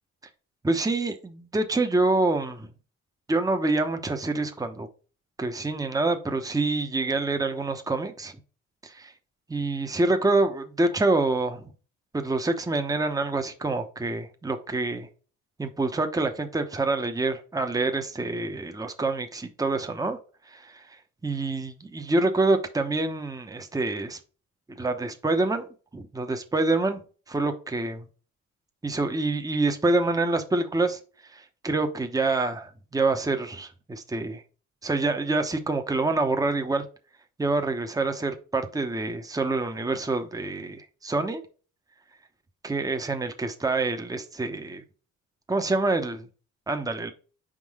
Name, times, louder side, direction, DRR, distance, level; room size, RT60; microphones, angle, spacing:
voice 1, 0.6-2.7 3.3-4.9 5.4-8.3 8.8-9.1 9.5-11.6 12.1-15.1 15.6-20.2 20.5-20.8 21.2-24.2 24.8-25.7 25.9-27.0 27.3-28.1 28.8-31.0 31.3-34.4 34.8-36.8 37.4-41.4 42.6-44.8 45.5-46.2 46.7-47.1, right 2 dB, 10° right, 0.9 m, -26 dB
5.2 x 3.8 x 4.8 m
cardioid pair, 90°, 30 cm